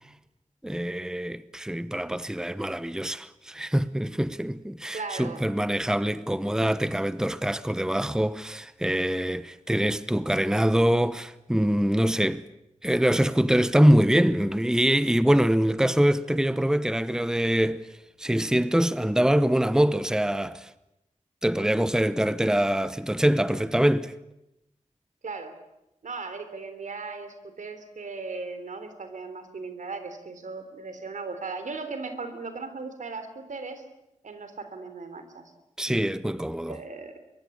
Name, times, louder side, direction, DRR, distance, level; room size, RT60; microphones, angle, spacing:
voice 1, 0.6-12.4 12.8-17.9 18.2-20.7 21.4-24.1 35.8-36.8, equal, 5° right, 0.9 m, -24 dB
voice 2, 4.9-5.4 25.2-25.6 26.0-33.8 34.2-35.5 36.7-37.2, right 4 dB, 90° right, 3.5 m, -37 dB
23.5 x 22.5 x 8.8 m
wide cardioid pair, 80°, 13 cm